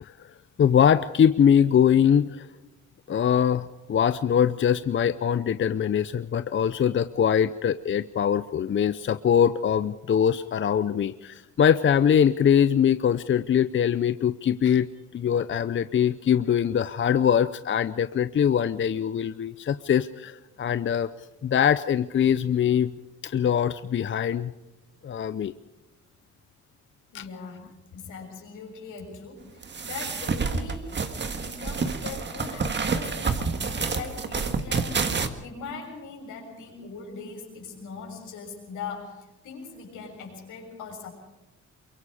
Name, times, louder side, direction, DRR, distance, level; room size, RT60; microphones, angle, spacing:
voice 1, 0.0-0.3 0.6-2.5 3.1-14.9 15.1-21.1 21.4-22.9 23.2-24.5 25.0-25.5 27.1-27.2, left 8 dB, 40° left, 13 dB, 0.7 m, -22 dB
voice 2, 27.1-27.6 27.9-41.1, left 5 dB, 80° left, 1 dB, 6.9 m, -40 dB
sound 1, 29.6-35.3, right 4 dB, 35° right, 1.8 m, -28 dB
23.5 x 23.0 x 5.0 m, 1.0 s
cardioid pair, 90°, 30 cm